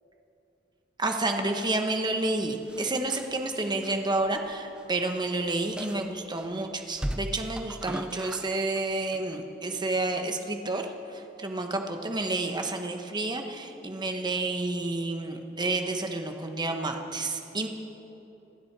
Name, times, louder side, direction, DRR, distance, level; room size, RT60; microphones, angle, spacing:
voice 1, 1.0-17.7, right 2 dB, 25° right, 4 dB, 1.1 m, -30 dB
sound 1, 2.6-4.9 5.2-5.3 5.8-6.5 7.0-8.8 9.1-9.4, equal, 5° right, 0.3 m, -37 dB
27.0 x 9.6 x 4.7 m, 3.0 s
head